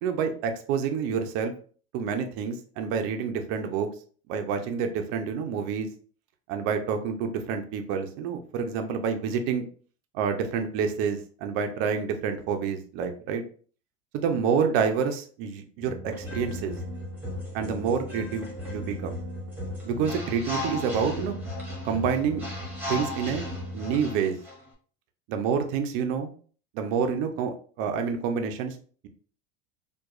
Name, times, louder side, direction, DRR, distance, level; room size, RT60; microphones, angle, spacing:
voice 1, 0.0-1.5 1.9-3.9 4.3-5.9 6.5-9.6 10.1-13.4 14.1-16.8 17.5-19.1 19.8-21.3 21.8-22.4 22.9-23.4 23.7-24.4 25.3-26.3 26.7-28.8, right 6 dB, 45° right, 6 dB, 0.5 m, -28 dB
sound 1, 15.8-24.6, left 1 dB, 5° right, 0.8 m, -35 dB
4.6 x 2.3 x 2.4 m, 0.43 s
supercardioid pair, 165°, 30 cm